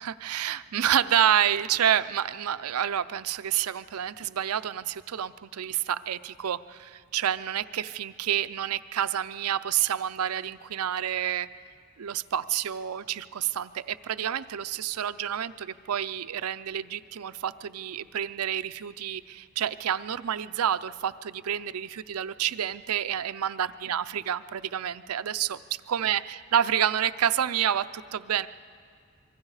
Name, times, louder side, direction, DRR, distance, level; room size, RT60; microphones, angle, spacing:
voice 1, 0.0-11.5 12.0-28.5, right 10 dB, 90° right, 14 dB, 0.5 m, -29 dB
25.5 x 23.5 x 4.9 m, 2.2 s
head